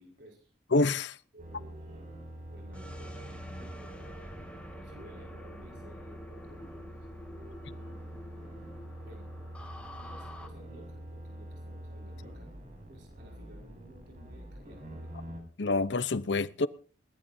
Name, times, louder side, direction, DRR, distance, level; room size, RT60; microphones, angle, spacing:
voice 1, 0.0-0.5 1.3-2.0 2.5-4.3 4.7-8.0 8.8-9.3 9.9-12.5 12.9-15.1, right 1 dB, 65° right, 5.1 m, -55 dB
voice 2, 0.7-1.2 15.6-16.7, left 3 dB, 70° left, 0.8 m, -27 dB
sound 1, 1.4-15.4, equal, 40° right, 6.4 m, -45 dB
sound 2, 2.7-10.5, equal, 5° left, 2.7 m, -47 dB
21.5 x 19.0 x 2.8 m
head